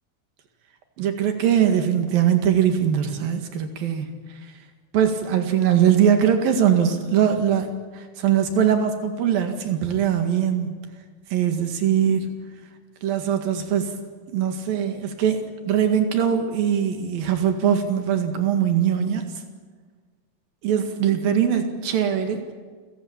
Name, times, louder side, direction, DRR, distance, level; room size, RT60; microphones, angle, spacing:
voice 1, 1.0-4.2 4.9-10.8 11.3-12.3 13.0-13.9 14.3-19.3 20.6-22.4, right 9 dB, 55° right, 6 dB, 3.3 m, -21 dB
28.5 x 16.5 x 8.8 m, 1.5 s
omnidirectional pair, 5.4 m